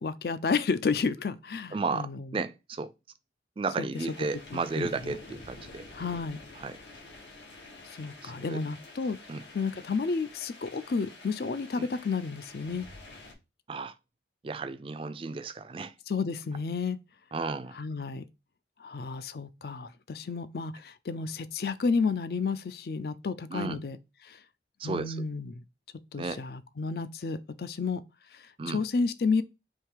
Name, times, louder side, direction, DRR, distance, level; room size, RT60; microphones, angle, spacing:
voice 1, 0.0-2.3 3.8-3.9 4.5-5.2 5.9-6.4 8.0-9.2 9.5-12.9 16.1-17.0 17.7-18.2 18.8-24.0 24.3-24.4 24.8-25.6 26.1-28.0 28.3-29.4, left 4 dB, 60° left, 0.4 m, -31 dB
voice 2, 1.7-2.9 3.6-5.9 6.6-6.8 8.2-8.6 9.3-9.4 11.8-11.9 13.7-13.9 14.4-15.9 17.3-17.8 23.5-23.8 24.8-25.2 26.2-26.4 28.6-28.8, right 4 dB, 30° right, 0.3 m, -34 dB
sound 1, 3.9-13.3, left 2 dB, 90° left, 1.4 m, -49 dB
3.6 x 3.2 x 4.6 m
head